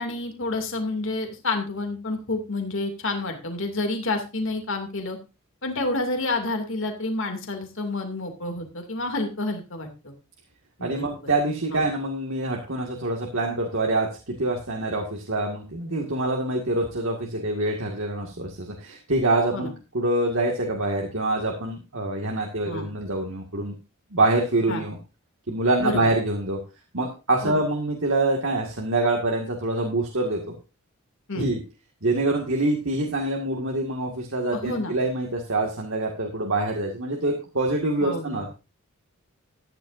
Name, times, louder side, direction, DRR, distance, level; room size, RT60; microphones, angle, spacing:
voice 1, 0.0-5.2 5.6-10.1 10.8-11.0 11.7-11.8 19.5-19.7 22.7-22.9 24.7-24.8 25.8-26.1 27.4-27.6 31.3-31.5 34.5-34.9 38.0-38.5, left 2 dB, 60° left, 4 dB, 2.6 m, -29 dB
voice 2, 10.8-23.7 24.1-25.0 25.5-26.6 26.9-30.5 31.3-31.6 32.0-38.5, right 2 dB, 60° right, 0 dB, 2.0 m, -25 dB
13.5 x 10.5 x 2.6 m, 0.29 s
head